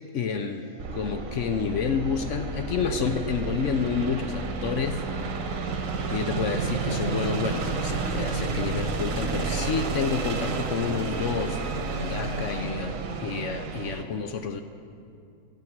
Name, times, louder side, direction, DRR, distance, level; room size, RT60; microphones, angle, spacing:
voice 1, 0.1-5.1 5.3-5.4 6.1-14.6, left 6 dB, 60° left, 7 dB, 0.8 m, -29 dB
sound 1, 0.5-9.4, right 2 dB, 10° right, 2.1 m, -50 dB
sound 2, 0.8-14.0, right 4 dB, 60° right, 1.3 m, -31 dB
12.5 x 7.6 x 7.3 m, 2.4 s
omnidirectional pair, 1.7 m